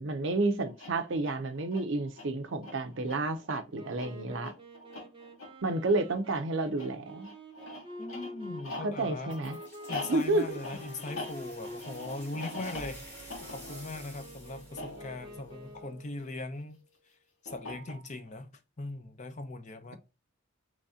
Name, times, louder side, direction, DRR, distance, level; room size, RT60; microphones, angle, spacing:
voice 1, 0.0-4.5 5.6-7.3 8.8-9.6 10.1-10.6, right 2 dB, 60° right, 0.5 m, -30 dB
sound 1, 0.7-16.4 17.5-18.3, left 2 dB, 85° left, 1.3 m, -45 dB
Wind instrument woodwind instrument, 3.7-16.2, equal, 25° right, 0.7 m, -48 dB
voice 2, 8.0-9.3 9.9-13.1 13.4-16.8 17.4-18.5 18.8-20.0, left 2 dB, 35° left, 0.5 m, -40 dB
sound 2, 9.3-15.9, equal, 10° left, 1.2 m, -51 dB
3.2 x 2.7 x 3.5 m
head